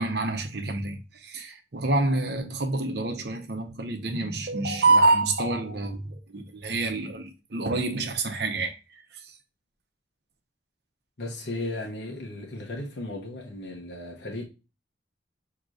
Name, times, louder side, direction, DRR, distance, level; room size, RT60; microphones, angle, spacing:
voice 1, 0.0-9.3, right 2 dB, 55° right, 0.8 m, -27 dB
voice 2, 11.2-14.4, left 2 dB, 60° left, 0.9 m, -35 dB
6.1 x 2.9 x 2.5 m
head